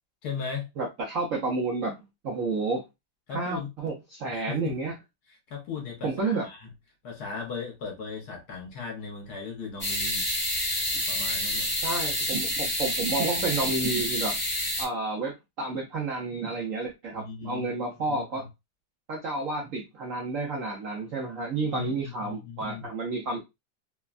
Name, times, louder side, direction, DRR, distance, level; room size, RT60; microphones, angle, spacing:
voice 1, 0.2-0.7 3.3-3.7 4.3-4.8 5.3-6.7 7.0-10.3 11.1-11.7 17.1-18.5 21.7-22.9, left 5 dB, 65° left, 1.2 m, -37 dB
voice 2, 0.8-2.0 2.2-2.8 3.3-4.9 6.0-6.4 11.8-14.4 14.8-18.4 19.1-23.4, right 3 dB, 70° right, 0.8 m, -30 dB
sound 1, 9.8-14.8, left 1 dB, 10° left, 0.6 m, -28 dB
3.2 x 2.2 x 2.4 m
omnidirectional pair, 2.0 m